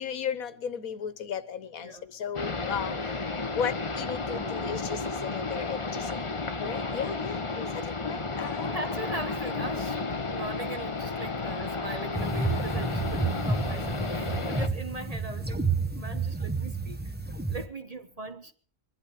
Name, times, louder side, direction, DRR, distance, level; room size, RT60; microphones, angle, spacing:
voice 1, 0.0-2.9 3.5-6.1 6.6-7.7 8.0-8.7, left 7 dB, 90° left, 1.6 m, -35 dB
sound 1, 2.3-14.7, left 3 dB, 25° left, 1.0 m, -33 dB
voice 2, 7.9-8.3 8.6-15.6 15.9-17.1 17.5-18.5, right 2 dB, 30° right, 1.1 m, -40 dB
Bowed string instrument, 9.5-14.3, left 7 dB, 70° left, 1.8 m, -42 dB
sound 2, 12.2-17.7, right 3 dB, 10° right, 0.9 m, -30 dB
22.5 x 12.0 x 4.9 m
omnidirectional pair, 1.4 m